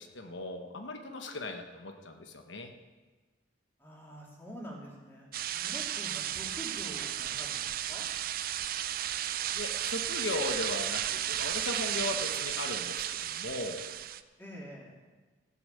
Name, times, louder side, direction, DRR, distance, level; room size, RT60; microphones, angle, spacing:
voice 1, 0.0-2.7 9.5-13.8, left 2 dB, 85° left, 5 dB, 1.0 m, -37 dB
voice 2, 3.8-8.0 14.4-15.0, equal, 10° left, -4 dB, 2.8 m, -46 dB
sound 1, 5.3-14.2, right 11 dB, 50° right, 0.4 m, -34 dB
15.0 x 6.8 x 6.7 m, 1.3 s
head